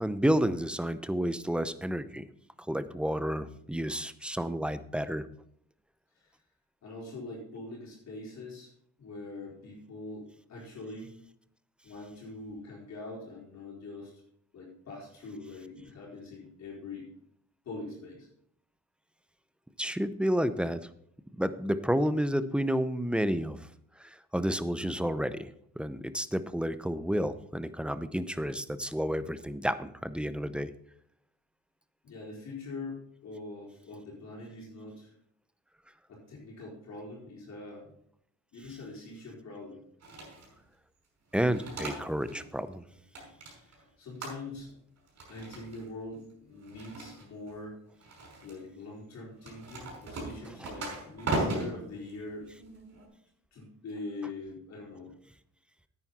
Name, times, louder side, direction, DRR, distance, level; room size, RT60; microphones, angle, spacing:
voice 1, 0.0-2.3 2.7-5.3 19.8-20.9 21.4-23.6 24.0-25.5 25.8-30.7 41.3-42.8, equal, 5° right, 13 dB, 0.6 m, -30 dB
voice 2, 6.8-8.7 9.0-11.1 11.8-14.2 14.5-17.1 17.6-18.3 32.0-35.1 36.1-37.9 38.5-39.8 43.5-44.7 45.3-47.8 48.4-52.5 53.5-55.1, left 2 dB, 65° left, -4 dB, 4.5 m, -43 dB
sound 1, 40.0-40.6 41.3-42.4 42.7-43.8 44.2-44.7 45.1-45.9 46.6-47.5 48.0-48.6 49.4-53.1, right 2 dB, 60° right, 5.2 m, -37 dB
9.7 x 9.2 x 4.2 m, 0.69 s
cardioid pair, 90°, 30 cm